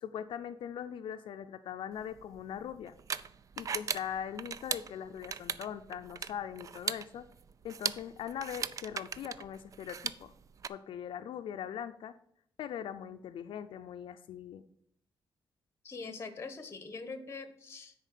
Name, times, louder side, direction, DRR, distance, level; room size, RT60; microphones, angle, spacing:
voice 1, 0.0-2.9 3.6-7.2 7.6-10.3 10.7-12.1 12.6-14.6, left 9 dB, 85° left, 8 dB, 0.5 m, -41 dB
sound 1, 2.0-10.7, right 7 dB, 40° right, 0.4 m, -39 dB
voice 2, 15.8-17.9, left 4 dB, 30° left, 10 dB, 1.2 m, -43 dB
9.8 x 4.6 x 6.6 m, 0.70 s
wide cardioid pair, 155°, 9 cm